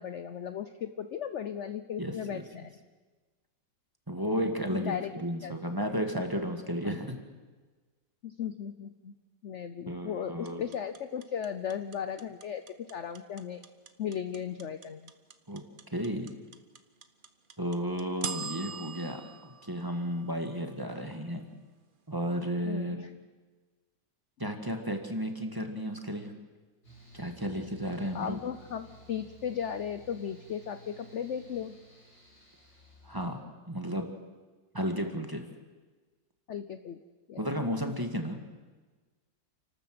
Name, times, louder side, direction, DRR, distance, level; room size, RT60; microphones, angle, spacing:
voice 1, 0.0-2.7 4.7-5.1 5.4-5.5 5.9-6.0 8.2-9.2 9.4-12.6 12.9-13.6 14.0-15.1 22.6-23.1 28.1-31.7 36.5-37.0 37.3-37.5, left 8 dB, 60° left, 10 dB, 0.8 m, -36 dB
voice 2, 2.0-2.4 4.1-7.2 9.9-10.6 15.5-15.6 15.9-16.3 17.6-21.5 22.1-23.0 24.4-26.3 27.1-28.4 33.0-33.4 33.7-34.1 34.7-35.5 37.4-38.4, equal, 10° right, 4 dB, 1.6 m, -33 dB
sound 1, 10.5-20.6, right 5 dB, 40° right, 0.8 m, -42 dB
Mechanical fan, 26.8-33.3, right 1 dB, 35° left, 6.2 m, -55 dB
29.5 x 12.5 x 7.7 m, 1.3 s
omnidirectional pair, 2.0 m